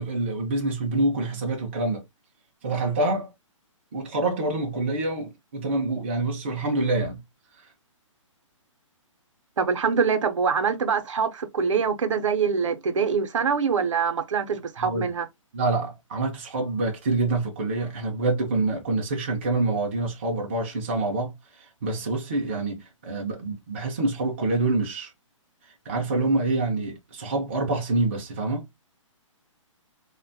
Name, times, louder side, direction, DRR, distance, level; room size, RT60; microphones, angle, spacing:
voice 1, 0.0-2.0 2.6-3.3 3.9-7.2 14.8-15.1 15.5-21.4 21.8-25.1 25.9-28.7, right 2 dB, 25° right, 0.4 m, -26 dB
voice 2, 9.6-15.3, right 6 dB, 70° right, 0.6 m, -24 dB
2.8 x 2.1 x 2.5 m
hypercardioid pair, 170°, 17 cm